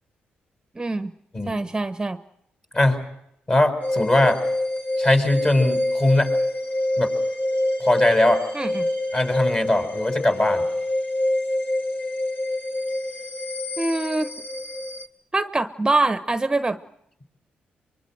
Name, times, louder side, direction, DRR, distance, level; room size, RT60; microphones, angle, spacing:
voice 1, 0.7-1.1 1.5-2.2 8.5-8.9 13.8-14.3 15.3-16.8, right 2 dB, 20° right, 12 dB, 1.1 m, -24 dB
voice 2, 3.5-4.4 5.0-6.3 7.0-7.1 7.8-8.4 9.1-10.6, left 1 dB, 30° left, 7 dB, 6.7 m, -20 dB
sound 1, 3.8-15.1, left 1 dB, 50° left, 2.8 m, -26 dB
24.0 x 23.5 x 7.9 m, 0.77 s
cardioid pair, 80°, 4 cm